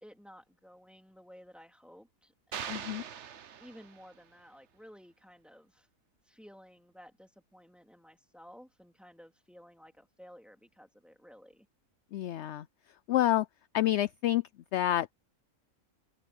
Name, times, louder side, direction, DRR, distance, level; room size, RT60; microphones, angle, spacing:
voice 1, 0.0-3.0 3.6-5.9 6.2-11.7, equal, ahead, 2.8 m, -55 dB
sound 1, 2.5-4.2, right 8 dB, 60° right, 1.2 m, -42 dB
voice 2, 2.7-3.0 12.1-12.7 13.1-13.5 13.7-14.4 14.7-15.1, left 13 dB, 65° left, 0.8 m, -28 dB
open air
omnidirectional pair, 1.4 m